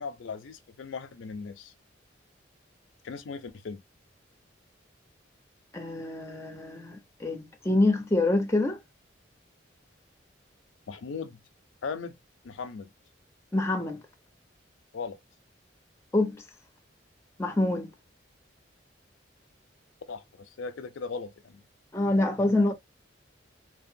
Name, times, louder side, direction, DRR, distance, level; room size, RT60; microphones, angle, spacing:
voice 1, 0.0-1.7 3.0-3.8 10.9-11.4 11.8-12.2 12.4-12.9 14.9-15.2 20.1-21.6, left 5 dB, 80° left, 0.4 m, -38 dB
voice 2, 5.7-8.8 13.5-14.0 16.1-16.4 17.4-17.9 21.9-22.7, left 2 dB, 15° left, 0.4 m, -26 dB
2.8 x 2.1 x 2.5 m
head